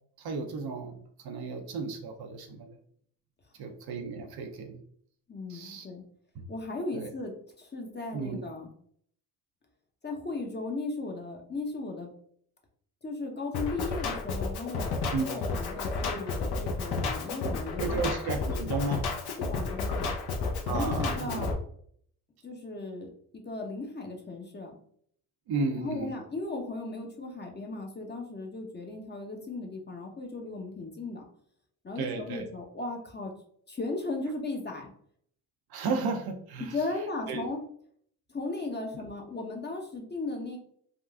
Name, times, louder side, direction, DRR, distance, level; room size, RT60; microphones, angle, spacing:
voice 1, 0.2-2.8 3.6-4.8 5.5-5.9 6.9-7.1 8.1-8.4 15.1-15.3 17.8-19.1 20.7-21.4 25.5-26.1 32.0-32.5 35.7-36.8 37.3-37.4, right 4 dB, 55° right, 3 dB, 0.7 m, -33 dB
voice 2, 5.3-6.0 6.5-7.3 7.6-8.7 10.0-12.1 13.0-18.1 19.4-20.1 20.6-21.5 22.4-23.1 23.4-24.8 25.8-31.2 31.8-33.3 33.7-34.9 36.6-37.6 38.3-40.6, left 3 dB, 25° left, 1 dB, 0.8 m, -36 dB
Drum kit, 13.5-21.5, left 3 dB, 55° left, 0.7 m, -31 dB
3.7 x 2.3 x 2.3 m, 0.62 s
hypercardioid pair, 55°, 45 cm